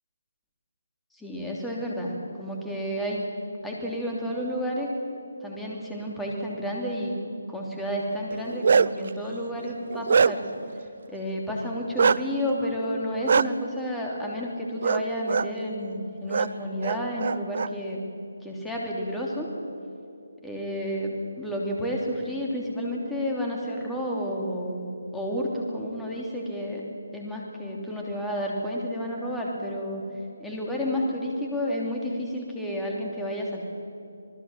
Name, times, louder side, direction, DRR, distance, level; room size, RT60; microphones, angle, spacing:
voice 1, 1.1-3.3 3.6-4.9 5.4-7.2 7.5-10.4 11.1-18.0 18.4-19.5 20.4-26.8 27.1-30.0 30.4-33.6, equal, 5° left, -3 dB, 3.1 m, -31 dB
Bark, 8.3-9.1 9.6-10.6 12.0-12.2 13.3-13.4 14.8-15.0 15.3-15.5 16.3-16.5 16.8-17.7, right 5 dB, 50° right, 0.6 m, -22 dB
27.5 x 19.5 x 7.5 m, 2.7 s
figure-of-eight pair, 155°, 0 cm